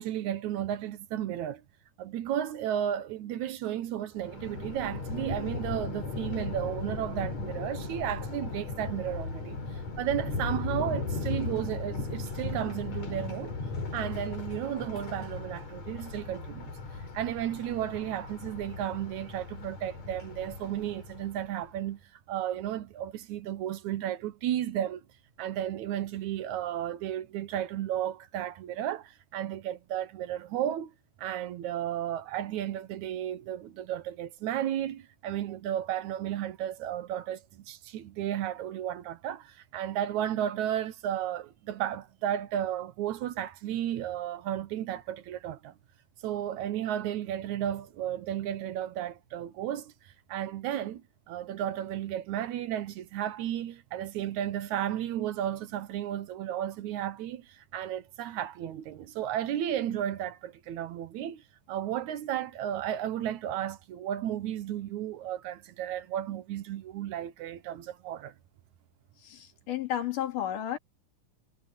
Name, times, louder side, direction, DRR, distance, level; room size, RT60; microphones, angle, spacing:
voice 1, 0.0-1.6 2.0-9.6 10.0-13.5 13.9-16.8 17.1-22.0 22.3-25.0 25.4-30.9 31.2-45.7 46.2-49.9 50.3-51.0 51.3-61.4 61.7-68.3, right 11 dB, 75° right, 2.2 m, -33 dB
Thunder, 4.2-21.6, left 3 dB, 60° left, 4.9 m, -37 dB
voice 2, 69.2-70.8, left 11 dB, 85° left, 3.7 m, -32 dB
omnidirectional pair, 3.6 m